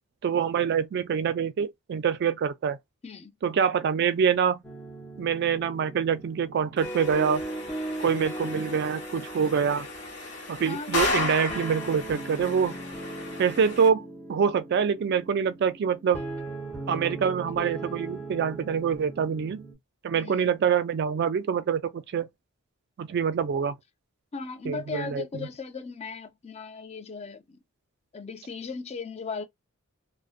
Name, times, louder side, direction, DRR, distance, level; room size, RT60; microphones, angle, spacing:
voice 1, 0.2-2.8 3.4-4.6 5.2-7.4 8.0-9.9 10.5-12.8 13.4-16.2 16.9-19.6 20.0-22.3 23.0-23.7 24.7-25.2, right 7 dB, 50° right, 0.3 m, -25 dB
sound 1, 4.6-19.7, right 2 dB, 10° left, 0.9 m, -38 dB
sound 2, 6.8-13.9, left 2 dB, 55° left, 1.3 m, -34 dB
voice 2, 10.7-11.5 20.1-20.5 24.3-27.6 28.1-29.4, left 4 dB, 30° left, 0.4 m, -37 dB
2.5 x 2.1 x 2.4 m
head